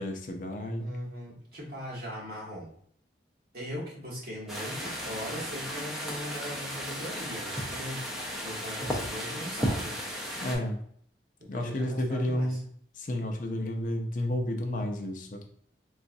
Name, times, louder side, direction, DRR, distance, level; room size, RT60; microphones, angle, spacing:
voice 1, 0.0-0.8 10.4-10.8 11.5-12.6 12.9-15.4, left 1 dB, 45° left, 3 dB, 0.4 m, -31 dB
voice 2, 0.8-2.7 3.5-10.0 11.4-12.6, equal, 55° right, -4 dB, 1.2 m, -39 dB
sound 1, 4.5-10.5, equal, ahead, 0.6 m, -34 dB
3.8 x 2.3 x 2.6 m, 0.62 s
head